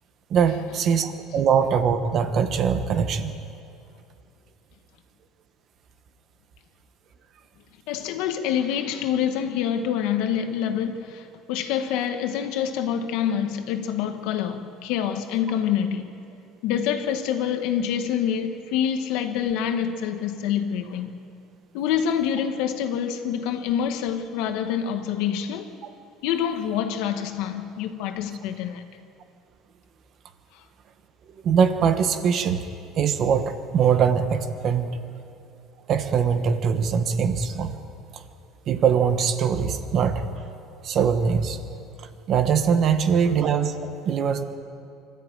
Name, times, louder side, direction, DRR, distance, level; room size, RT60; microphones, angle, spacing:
voice 1, 0.3-3.3 31.4-32.6 32.9-34.9 35.9-37.7 38.7-40.3 40.8-41.6 42.3-43.7 44.0-44.4, right 7 dB, 35° right, 1.3 m, -22 dB
voice 2, 7.9-16.1 16.6-21.1 21.7-25.7 26.2-28.8, left 9 dB, 70° left, 1.6 m, -26 dB
24.5 x 13.5 x 9.0 m
cardioid pair, 160°, 0 cm